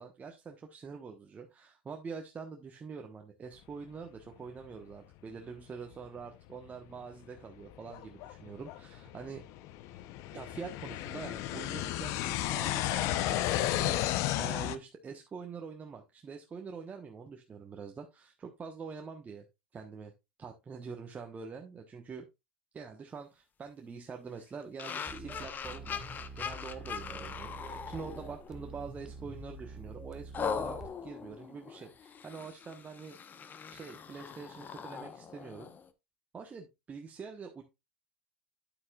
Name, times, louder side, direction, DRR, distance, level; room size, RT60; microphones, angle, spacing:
voice 1, 0.0-9.5 10.3-19.4 19.7-20.1 20.4-22.3 22.7-26.0 26.3-33.2 33.7-35.7 36.3-37.6, right 5 dB, 25° right, 3 dB, 1.2 m, -45 dB
sound 1, 5.9-6.0 6.6-6.7 7.4-14.8, left 14 dB, 55° left, 0.7 m, -33 dB
sound 2, 24.8-28.6 29.1-29.3 30.3-35.9, left 6 dB, 30° left, 1.0 m, -41 dB
sound 3, 25.1-30.9, right 3 dB, 10° right, 1.4 m, -46 dB
9.2 x 8.5 x 2.4 m, 0.23 s
hypercardioid pair, 85°, 6 cm